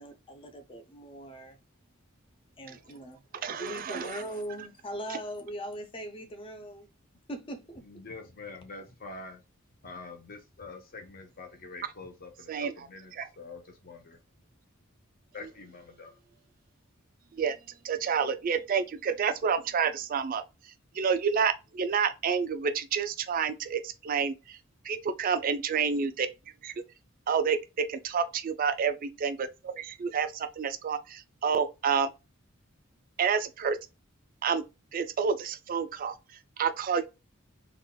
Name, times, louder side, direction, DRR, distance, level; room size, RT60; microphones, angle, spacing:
voice 1, 0.0-1.6 2.6-3.2 3.5-6.9 7.3-7.9, right 1 dB, 25° left, 0.6 m, -40 dB
voice 2, 3.3-4.2 5.1-5.2 11.8-11.9 12.5-13.3 15.4-15.5 17.3-17.6 17.8-24.6 24.8-26.3 26.6-26.8 27.3-32.1 33.2-33.8 34.4-34.6 34.9-37.1, right 6 dB, 40° right, 0.3 m, -29 dB
voice 3, 7.8-9.4 9.8-14.2 15.3-16.1, left 3 dB, 45° left, 0.9 m, -45 dB
3.9 x 2.3 x 2.2 m
head